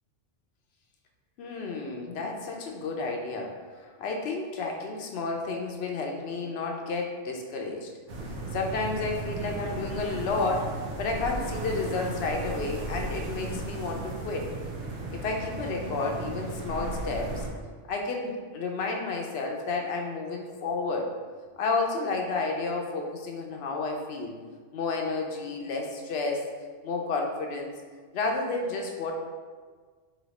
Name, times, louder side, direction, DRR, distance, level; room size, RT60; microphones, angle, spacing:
voice 1, 1.4-7.9 8.5-14.5 15.1-17.5 17.9-21.1 21.6-24.4 24.7-26.5 26.8-27.7 28.1-29.1, left 3 dB, 70° left, 1 dB, 0.8 m, -31 dB
sound 1, 8.1-17.5, right 2 dB, 90° right, 1.0 m, -35 dB
3.1 x 2.7 x 4.0 m, 1.5 s
omnidirectional pair, 1.2 m